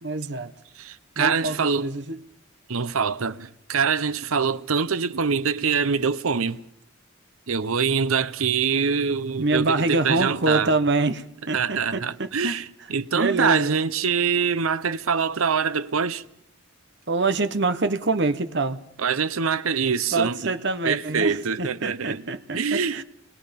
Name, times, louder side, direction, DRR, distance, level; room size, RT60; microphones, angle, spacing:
voice 1, 0.0-0.5 1.2-2.2 9.4-12.6 13.1-13.8 17.1-18.8 20.1-23.0, right 3 dB, 55° right, 1.1 m, -25 dB
voice 2, 0.8-1.9 2.7-6.6 7.5-10.7 11.5-12.6 12.9-16.2 19.0-20.5 20.8-23.0, right 6 dB, 85° right, 0.8 m, -24 dB
27.5 x 20.5 x 5.3 m
head